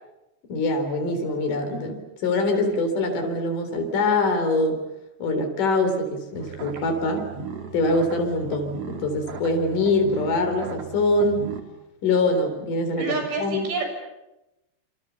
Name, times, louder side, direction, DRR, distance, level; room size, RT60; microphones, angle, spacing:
voice 1, 0.5-4.8 5.2-7.3 7.7-11.4 12.0-13.7, left 2 dB, 50° left, 5 dB, 5.3 m, -24 dB
sound 1, 6.3-11.6, right 5 dB, 40° right, 3.4 m, -37 dB
voice 2, 13.0-13.8, right 4 dB, 85° right, 4 dB, 8.7 m, -28 dB
28.0 x 27.5 x 7.0 m, 0.95 s
omnidirectional pair, 4.8 m